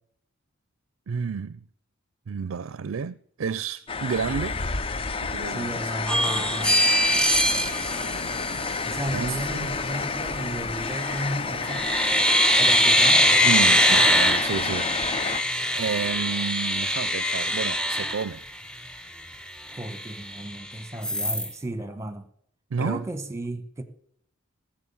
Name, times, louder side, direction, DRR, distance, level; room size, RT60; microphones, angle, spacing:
voice 1, 1.1-1.6 2.3-4.6 5.2-5.7 8.9-9.7 13.4-15.0 15.7-18.4 22.7-23.0, right 6 dB, 70° right, 0.4 m, -30 dB
sound 1, 3.9-15.4, left 4 dB, 25° left, 0.5 m, -30 dB
sound 2, 4.3-12.1, left 2 dB, 65° left, 1.6 m, -42 dB
voice 2, 5.5-6.9 8.8-11.8 12.6-13.4 19.7-22.2 22.8-23.8, right 1 dB, 15° right, 1.2 m, -34 dB
sound 3, 6.1-9.1 10.9-11.3 11.6-18.9 19.3-19.4 19.7-20.6 21.0-21.5, equal, 5° left, 0.8 m, -23 dB
18.5 x 7.4 x 7.1 m
head